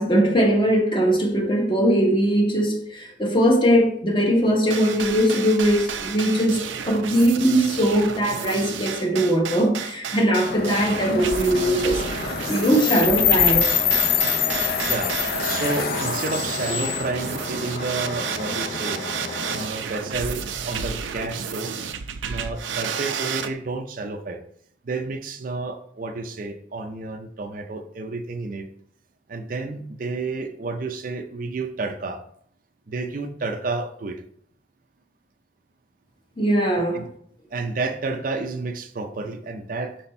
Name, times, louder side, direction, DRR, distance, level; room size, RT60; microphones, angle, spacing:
voice 1, 0.0-13.8 36.4-37.0, equal, 25° left, 1.0 m, -20 dB
sound 1, 4.7-23.5, right 7 dB, 90° right, 0.6 m, -31 dB
sound 2, 10.5-19.7, left 8 dB, 50° left, 0.6 m, -26 dB
voice 2, 14.9-19.0 19.5-21.7 22.3-24.4 24.8-28.7 29.3-32.2 32.9-34.2 36.9-37.0 37.5-40.0, right 3 dB, 45° right, 0.5 m, -30 dB
6.2 x 4.2 x 4.3 m
head